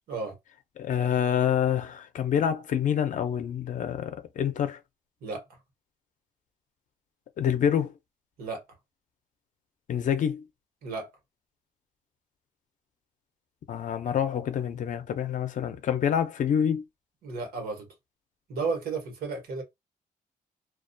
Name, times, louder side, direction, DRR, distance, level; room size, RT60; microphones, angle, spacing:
voice 1, 0.8-4.8 7.4-7.9 9.9-10.4 13.7-16.8, left 9 dB, 60° left, 0.5 m, -27 dB
voice 2, 17.2-17.9 18.5-19.6, right 4 dB, 90° right, 1.0 m, -33 dB
2.3 x 2.1 x 2.5 m
cardioid pair, 125°, 15 cm